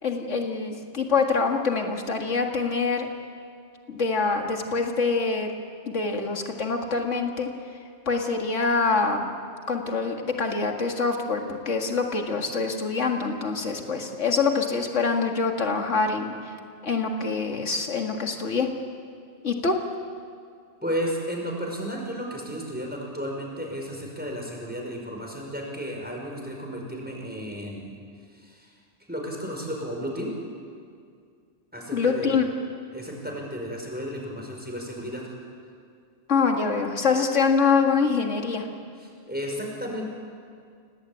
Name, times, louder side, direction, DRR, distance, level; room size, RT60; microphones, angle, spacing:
voice 1, 0.0-3.1 3.9-5.5 5.9-7.5 8.1-9.3 9.7-16.3 16.8-18.7 19.4-19.8 31.9-32.5 36.3-38.6, left 4 dB, 80° left, 3 dB, 2.3 m, -25 dB
voice 2, 20.8-27.9 28.3-28.7 29.1-30.3 31.7-32.4 32.9-35.3 39.0-40.1, equal, 10° right, -1 dB, 5.4 m, -33 dB
28.0 x 18.5 x 8.8 m, 2.2 s
omnidirectional pair, 1.2 m